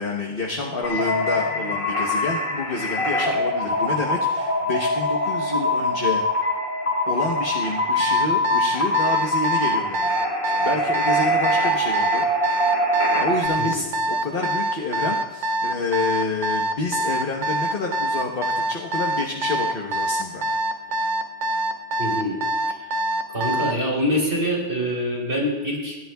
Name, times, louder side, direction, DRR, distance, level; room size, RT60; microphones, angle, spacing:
voice 1, 0.0-6.4 7.1-10.1 10.6-12.6 13.1-20.5, left 3 dB, 55° left, -1 dB, 1.3 m, -28 dB
sound 1, 0.8-13.5, left 1 dB, 30° left, 2.5 m, -23 dB
Alarm, 8.0-23.8, right 1 dB, 45° right, 0.8 m, -24 dB
voice 2, 22.0-22.4 22.7-22.9 23.3-26.0, equal, 65° right, -3 dB, 4.5 m, -25 dB
27.0 x 11.0 x 2.3 m, 1.2 s
omnidirectional pair, 1.1 m